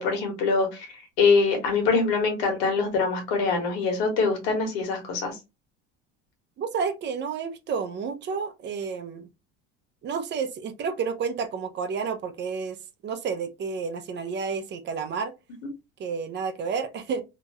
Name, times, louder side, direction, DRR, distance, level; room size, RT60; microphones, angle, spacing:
voice 1, 0.0-5.3, left 4 dB, 80° left, 1.3 m, -24 dB
voice 2, 6.6-9.3 10.0-15.3 16.0-17.2, right 5 dB, 35° right, 0.5 m, -30 dB
2.9 x 2.3 x 2.8 m
supercardioid pair, 115°, 30 cm